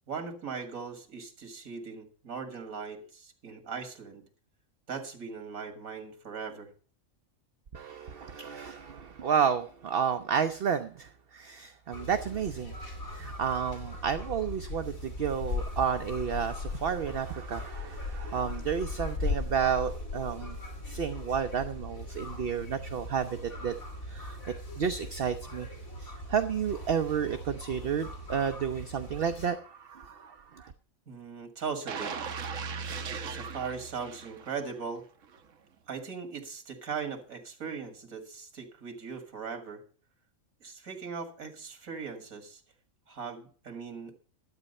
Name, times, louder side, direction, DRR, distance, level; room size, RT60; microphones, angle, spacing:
voice 1, 0.1-4.3 4.9-6.7 31.1-32.2 33.2-35.0 35.9-39.8 40.6-42.6 43.1-44.2, right 5 dB, 85° right, 5 dB, 2.4 m, -39 dB
voice 2, 7.7-12.7 13.1-20.6 20.9-23.7 24.1-24.4 24.8-25.7 26.0-30.7, right 7 dB, 50° right, 9 dB, 0.8 m, -31 dB
sound 1, 11.9-29.5, left 2 dB, 85° left, 3.3 m, -39 dB
sound 2, 31.9-34.8 35.2-35.4, right 5 dB, 70° right, 1.3 m, -38 dB
12.0 x 8.8 x 5.3 m, 0.42 s
omnidirectional pair, 1.4 m